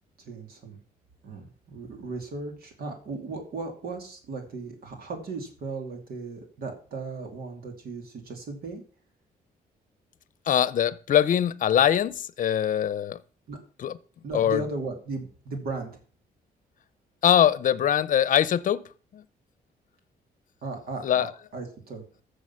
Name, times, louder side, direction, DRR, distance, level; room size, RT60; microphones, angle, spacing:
voice 1, 0.2-0.8 1.2-8.8 13.5-13.6 14.2-15.9 20.6-22.0, right 3 dB, 70° right, 2.6 m, -36 dB
voice 2, 10.5-13.2 13.8-14.0 14.3-14.6 17.2-18.8 19.1-19.2 21.0-21.3, left 10 dB, 55° left, 0.7 m, -22 dB
14.0 x 6.9 x 5.7 m
cardioid pair, 120°, 16 cm